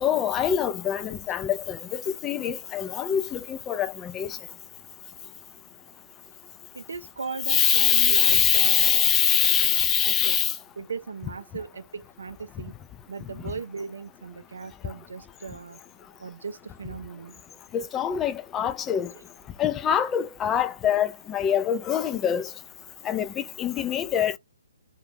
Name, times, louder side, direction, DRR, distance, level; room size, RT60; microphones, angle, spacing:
voice 1, 0.0-4.4 7.5-10.5 17.7-19.1 19.6-22.5 23.0-24.3, left 9 dB, 15° left, 0.3 m, -24 dB
voice 2, 6.7-9.1 9.4-10.4 10.8-12.7 13.1-15.8 16.2-17.4, right 5 dB, 70° right, 0.4 m, -37 dB
2.4 x 2.2 x 3.3 m
hypercardioid pair, 145°, 0 cm